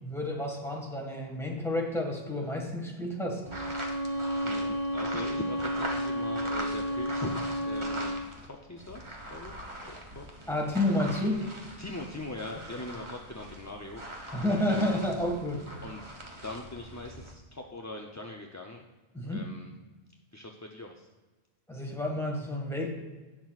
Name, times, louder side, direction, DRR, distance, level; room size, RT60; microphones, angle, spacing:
voice 1, 0.0-3.4 10.5-11.5 14.3-15.7 19.1-19.4 21.7-22.9, left 1 dB, ahead, 0 dB, 1.6 m, -30 dB
sound 1, 3.4-8.5 8.8-17.3, right 1 dB, 25° right, 1.3 m, -42 dB
Bowed string instrument, 3.4-8.3, equal, 55° right, 2.8 m, -32 dB
voice 2, 4.4-9.0 9.3-9.6 9.9-10.3 11.8-15.1 15.8-16.0 16.4-18.8 19.2-19.7 20.3-21.1, left 2 dB, 20° left, 1 dB, 0.5 m, -41 dB
17.5 x 6.1 x 2.4 m, 1.2 s
omnidirectional pair, 1.1 m